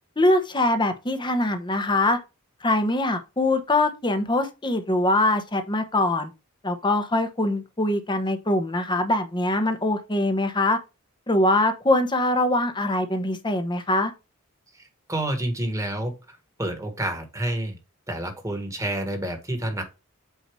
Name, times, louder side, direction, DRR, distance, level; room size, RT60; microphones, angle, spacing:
voice 1, 0.2-2.2 2.6-6.3 6.6-10.8 11.3-14.1, left 1 dB, 20° left, 1.0 m, -23 dB
voice 2, 14.7-17.8 18.1-19.8, right 1 dB, 15° right, 1.6 m, -29 dB
8.3 x 2.8 x 4.6 m
head